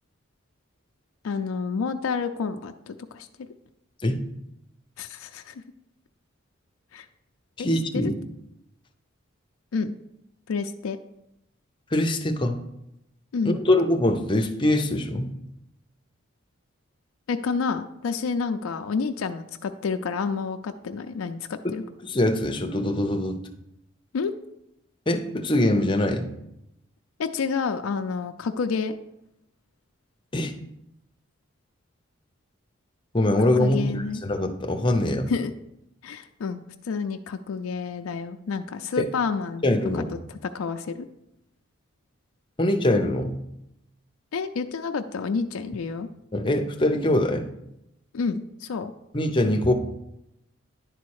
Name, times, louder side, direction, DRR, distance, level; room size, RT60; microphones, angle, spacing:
voice 1, 1.2-3.3 5.0-5.6 6.9-7.1 7.6-7.7 7.9-8.1 9.7-9.9 10.5-11.0 13.3-13.6 17.3-21.8 24.1-24.3 27.2-28.9 33.6-34.2 35.3-35.5 36.0-39.7 39.9-40.0 40.3-41.1 44.3-46.1 48.1-48.9, left 5 dB, 85° left, 6 dB, 0.4 m, -29 dB
voice 2, 7.6-8.1 11.9-12.6 13.4-15.3 21.6-21.7 22.0-23.4 25.1-26.3 30.3-30.5 33.1-35.3 39.0-39.1 39.6-40.0 42.6-43.4 46.3-47.5 49.1-49.7, left 1 dB, 25° left, 5 dB, 0.6 m, -23 dB
10.5 x 4.2 x 4.7 m, 0.84 s
head